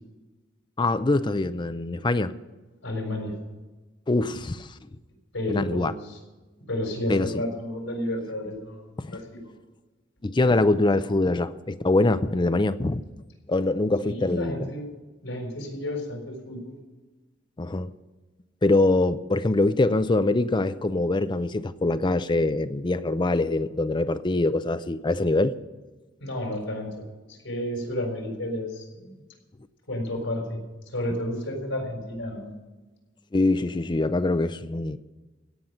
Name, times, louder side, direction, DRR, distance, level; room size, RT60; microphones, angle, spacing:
voice 1, 0.8-2.3 4.1-4.7 5.5-5.9 7.1-7.3 9.0-9.1 10.2-13.0 13.5-14.7 17.6-17.9 18.6-25.5 33.3-35.0, left 2 dB, 25° left, 12 dB, 0.5 m, -23 dB
voice 2, 2.8-3.3 5.3-6.2 6.7-9.4 14.0-14.9 15.2-16.8 26.2-29.2 29.9-30.6 30.9-32.5, left 1 dB, 85° left, 2 dB, 4.3 m, -31 dB
16.5 x 5.8 x 9.4 m, 1.2 s
head